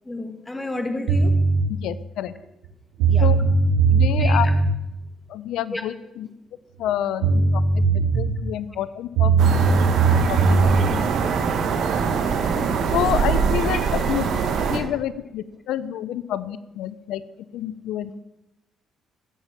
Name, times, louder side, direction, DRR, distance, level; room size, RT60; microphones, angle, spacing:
voice 1, 0.1-1.3 3.1-3.3 4.2-4.5 5.7-5.8 10.6-11.1 11.4-11.6 13.7-13.9, left 2 dB, 15° left, 6 dB, 2.3 m, -32 dB
sound 1, 1.1-1.6 2.7-2.8 3.0-4.7 6.8-6.9 7.2-8.4 9.2-10.8, right 4 dB, 90° right, 3.1 m, -18 dB
voice 2, 1.7-2.3 3.2-3.4 3.9-4.5 5.3-6.3 6.8-10.6 12.9-13.8 14.1-14.3 14.7-17.2 17.5-18.2, left 11 dB, 80° left, 16 dB, 0.7 m, -28 dB
sound 2, 9.4-14.8, right 6 dB, 70° right, 1.6 m, -23 dB
sound 3, 9.5-14.9, right 2 dB, 20° right, 3.1 m, -34 dB
16.5 x 7.4 x 7.5 m, 0.94 s
supercardioid pair, 75°, 0 cm